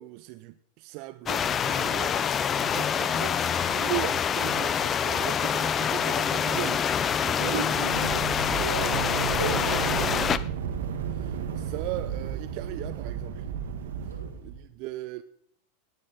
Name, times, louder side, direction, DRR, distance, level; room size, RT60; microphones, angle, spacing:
voice 1, 0.0-2.2 2.6-6.8 7.2-7.7 11.1-13.5 14.0-15.2, right 18 dB, 50° right, 0.7 m, -38 dB
sound 1, 1.3-10.4, left 8 dB, 30° left, 0.7 m, -26 dB
voice 2, 7.4-8.3 8.6-9.1 9.4-10.3 14.1-14.4, right 3 dB, 85° right, 2.4 m, -35 dB
sound 2, 7.6-14.6, right 7 dB, 70° right, 1.9 m, -33 dB
19.5 x 9.8 x 4.3 m
figure-of-eight pair, 90°, 0 cm